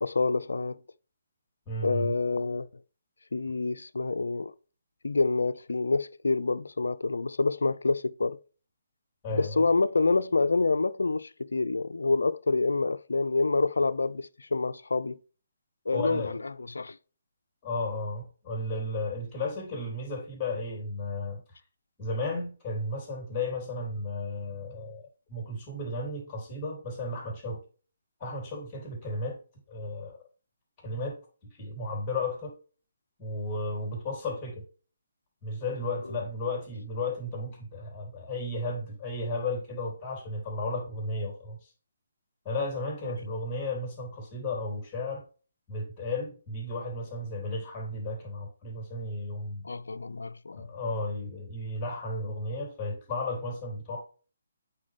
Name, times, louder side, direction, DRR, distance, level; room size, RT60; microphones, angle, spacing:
voice 1, 0.0-0.8 1.8-2.8 3.3-4.5 5.0-8.4 9.3-15.2 15.9-17.0 36.1-36.2 43.0-43.2 49.6-50.7, left 3 dB, 75° left, 0.4 m, -27 dB
voice 2, 1.7-2.1 9.2-9.6 15.9-16.4 17.6-21.4 22.0-25.0 25.3-27.6 28.2-29.4 29.7-30.2 30.8-31.2 31.6-32.5 33.2-34.6 35.4-41.6 42.5-45.2 45.7-49.6 50.5-54.0, left 2 dB, 20° left, 3.5 m, -34 dB
8.4 x 4.5 x 3.2 m
figure-of-eight pair, 140°, 0 cm